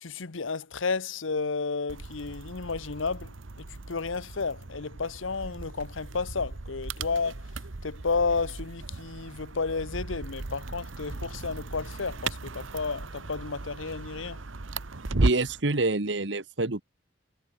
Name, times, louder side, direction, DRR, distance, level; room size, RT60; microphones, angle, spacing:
voice 1, 0.0-14.4, left 4 dB, 90° left, 1.0 m, -32 dB
sound 1, 1.9-15.6, right 2 dB, 90° right, 1.2 m, -36 dB
voice 2, 15.2-16.8, right 2 dB, 65° right, 1.4 m, -27 dB
head